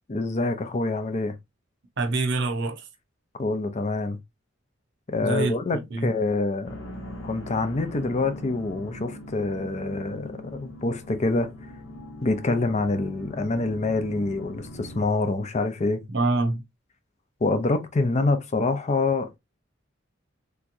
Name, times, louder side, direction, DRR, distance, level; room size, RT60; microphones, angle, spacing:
voice 1, 0.1-1.4 3.3-4.2 5.1-6.8 7.2-11.5 12.2-16.0 17.4-19.4, left 3 dB, 35° left, 0.5 m, -26 dB
voice 2, 2.0-2.9 5.2-6.1 16.1-16.6, right 2 dB, 60° right, 0.8 m, -26 dB
sound 1, 6.6-15.1, left 1 dB, 70° left, 1.0 m, -40 dB
3.5 x 3.0 x 2.5 m
head